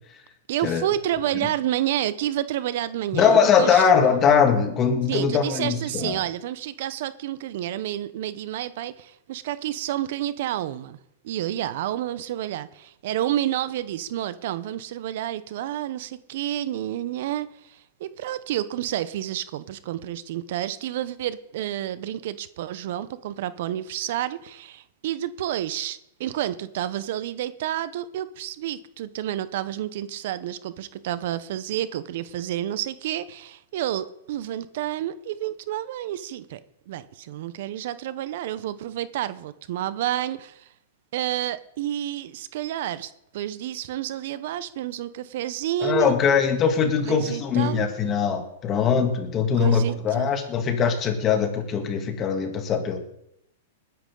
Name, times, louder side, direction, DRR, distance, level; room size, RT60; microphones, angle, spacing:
voice 1, 0.5-3.8 5.1-11.0 11.2-36.6 36.9-40.7 41.1-46.1 47.0-47.8 49.6-50.3, right 12 dB, 60° right, 15 dB, 0.8 m, -30 dB
voice 2, 3.1-6.2 45.8-53.0, left 6 dB, 30° left, 4 dB, 2.8 m, -21 dB
20.5 x 10.5 x 3.9 m, 0.78 s
hypercardioid pair, 135°, 0 cm